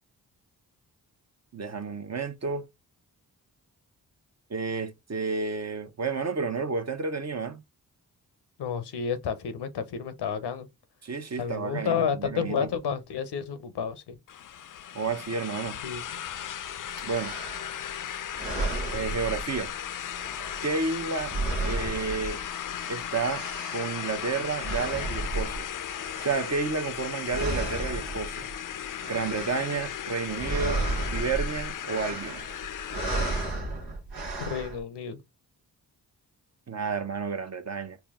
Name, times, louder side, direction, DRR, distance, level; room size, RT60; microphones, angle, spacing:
voice 1, 1.5-2.7 4.5-7.6 11.0-12.7 14.9-15.8 17.0-17.4 18.9-19.7 20.6-21.4 21.6-22.4 22.9-23.5 23.7-25.7 26.2-28.5 29.1-30.9 31.1-32.4 36.7-38.0, right 4 dB, 40° right, 0.8 m, -31 dB
voice 2, 8.6-10.7 11.4-14.2 15.8-16.0 34.4-35.2, left 7 dB, 85° left, 0.7 m, -30 dB
sound 1, 14.3-33.6, left 10 dB, 55° left, 0.5 m, -36 dB
sound 2, 16.9-17.9 18.3-19.8 20.1-22.8 23.0-27.0 27.3-28.6 28.9-30.0 30.2-34.8, right 2 dB, 85° right, 1.1 m, -34 dB
4.2 x 2.2 x 3.4 m
cardioid pair, 40°, 40 cm